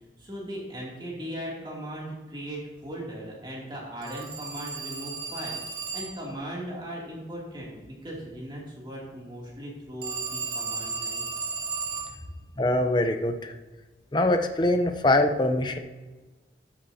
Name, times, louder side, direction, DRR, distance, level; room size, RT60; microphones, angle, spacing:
voice 1, 0.2-5.6 5.9-11.2, right 1 dB, 25° right, -4 dB, 2.8 m, -38 dB
Telephone, 4.0-6.3 10.0-12.2, right 5 dB, 65° right, 2.0 m, -34 dB
voice 2, 12.6-13.5 14.1-15.8, left 1 dB, 25° left, 6 dB, 0.7 m, -23 dB
12.5 x 8.8 x 2.8 m, 1.3 s
head